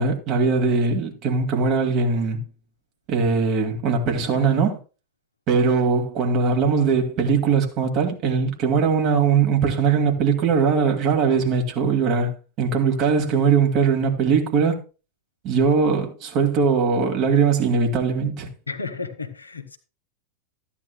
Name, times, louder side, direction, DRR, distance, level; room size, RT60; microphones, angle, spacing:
voice 1, 0.0-2.4 3.1-4.8 5.5-14.8 15.4-18.5, right 5 dB, 40° right, 2.5 m, -20 dB
voice 2, 18.7-19.8, left 4 dB, 80° left, 1.3 m, -32 dB
14.0 x 9.8 x 2.3 m
figure-of-eight pair, 90°, 0 cm